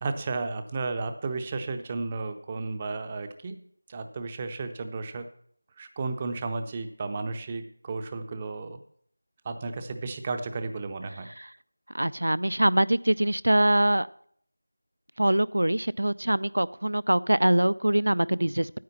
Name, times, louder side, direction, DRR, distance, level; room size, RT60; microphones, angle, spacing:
voice 1, 0.0-3.6 3.9-5.3 5.8-8.8 9.4-11.3, right 3 dB, 15° right, 8 dB, 0.5 m, -33 dB
voice 2, 11.9-14.1 15.2-18.7, right 1 dB, 90° right, 19 dB, 0.4 m, -23 dB
9.5 x 8.9 x 5.8 m, 0.63 s
figure-of-eight pair, 175°, 0 cm